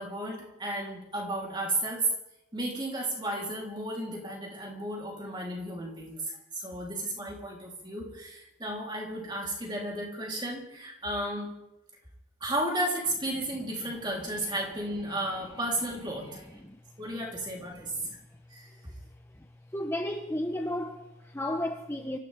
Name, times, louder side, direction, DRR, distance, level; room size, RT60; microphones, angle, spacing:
voice 1, 0.0-2.1 2.5-11.5 12.4-16.6 17.0-18.0 18.5-18.9, right 1 dB, 20° right, 3.5 m, -33 dB
voice 2, 19.7-22.2, left 1 dB, 10° left, 0.8 m, -33 dB
26.5 x 15.0 x 3.6 m
head